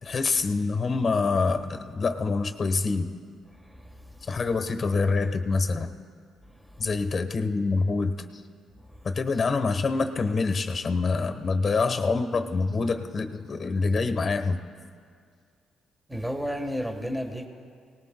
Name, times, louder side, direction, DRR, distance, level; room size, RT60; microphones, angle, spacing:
voice 1, 0.0-3.1 4.3-5.9 6.8-8.2 9.0-14.6, left 4 dB, 45° left, 8 dB, 1.1 m, -26 dB
voice 2, 16.1-17.5, equal, 5° right, 3 dB, 1.4 m, -32 dB
28.0 x 19.0 x 2.3 m, 2.2 s
cardioid pair, 90°, 0 cm